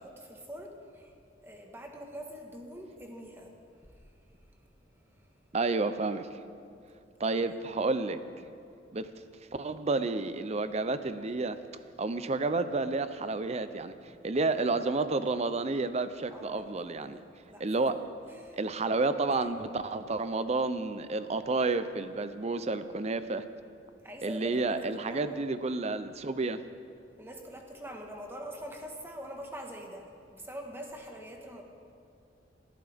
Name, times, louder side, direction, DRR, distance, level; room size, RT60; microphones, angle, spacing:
voice 1, 0.0-5.5 7.5-7.6 16.3-17.6 18.0-18.6 19.3-19.5 24.0-25.3 27.2-31.6, equal, 15° right, 1 dB, 1.5 m, -45 dB
voice 2, 5.5-6.4 7.2-8.2 8.9-9.1 9.6-11.6 12.0-13.9 14.2-17.2 17.6-18.0 18.6-23.4 24.2-26.6, right 3 dB, 35° right, 11 dB, 0.6 m, -30 dB
20.5 x 13.0 x 3.5 m, 2.5 s
head